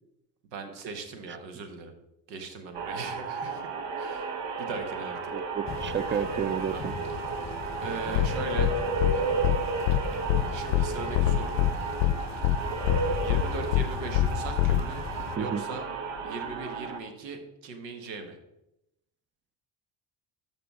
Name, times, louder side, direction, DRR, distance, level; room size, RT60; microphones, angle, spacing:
voice 1, 0.5-1.9 2.3-3.7 4.0-5.3 6.7-6.8 7.8-8.7 10.5-11.6 13.2-15.0 15.4-15.9 16.2-18.4, right 4 dB, 85° right, 7 dB, 1.4 m, -39 dB
sound 1, 2.7-17.0, right 4 dB, 65° right, 1.3 m, -33 dB
voice 2, 5.3-6.9 15.4-15.6, right 7 dB, 25° right, 16 dB, 0.6 m, -31 dB
sound 2, 5.6-15.4, left 9 dB, 35° left, 0.6 m, -38 dB
sound 3, 8.1-8.3 8.6-8.7 9.0-9.1 9.4-9.6 9.9-10.0 10.3-10.4 10.7-10.8 11.1-11.7 12.0-12.1 12.4-12.6 12.9-13.0 13.3-13.4 13.7-13.8 14.1-14.3 14.6-14.8, left 14 dB, 85° left, 0.6 m, -23 dB
14.0 x 5.1 x 3.6 m, 0.86 s
hypercardioid pair, 55°, 50 cm